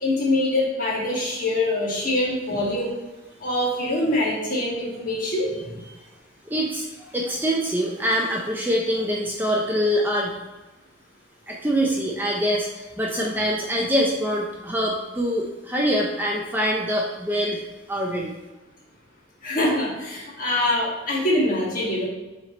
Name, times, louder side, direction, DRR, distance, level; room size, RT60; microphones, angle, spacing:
voice 1, 0.0-2.9 3.4-5.5 19.4-22.1, left 1 dB, 45° left, -4 dB, 1.7 m, -24 dB
voice 2, 6.5-10.4 11.5-17.6 17.9-18.3, equal, 10° right, -2 dB, 0.5 m, -24 dB
7.4 x 3.3 x 3.8 m, 1.1 s
head